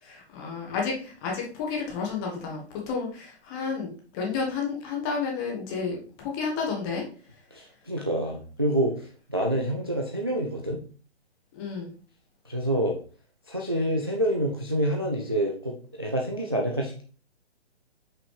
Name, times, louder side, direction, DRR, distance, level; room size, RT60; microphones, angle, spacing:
voice 1, 0.0-7.0 11.5-11.9, left 5 dB, 20° left, -1 dB, 1.3 m, -31 dB
voice 2, 7.5-10.8 12.5-13.0 13.5-17.0, right 1 dB, 25° right, 0 dB, 0.3 m, -27 dB
6.0 x 5.5 x 3.2 m, 0.40 s
figure-of-eight pair, 135°, 34 cm